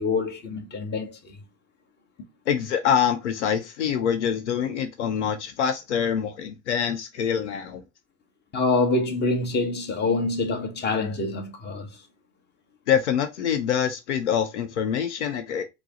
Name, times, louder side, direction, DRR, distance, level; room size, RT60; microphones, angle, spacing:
voice 1, 0.0-1.4 8.5-11.9, left 3 dB, 30° left, 1.1 m, -26 dB
voice 2, 2.5-7.8 12.9-15.6, left 8 dB, 80° left, 0.6 m, -25 dB
4.6 x 2.0 x 3.6 m
hypercardioid pair, 75°, 34 cm